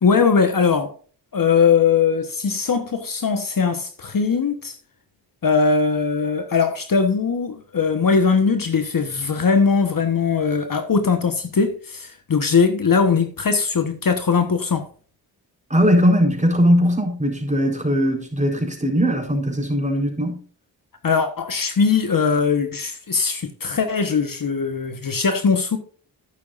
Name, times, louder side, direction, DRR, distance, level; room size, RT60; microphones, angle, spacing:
voice 1, 0.0-0.9 1.3-4.8 5.4-14.9 21.0-25.8, left 5 dB, 45° left, 1.3 m, -20 dB
voice 2, 15.7-20.4, equal, 15° right, 4.2 m, -19 dB
11.5 x 9.5 x 2.5 m
cardioid pair, 50°, 45 cm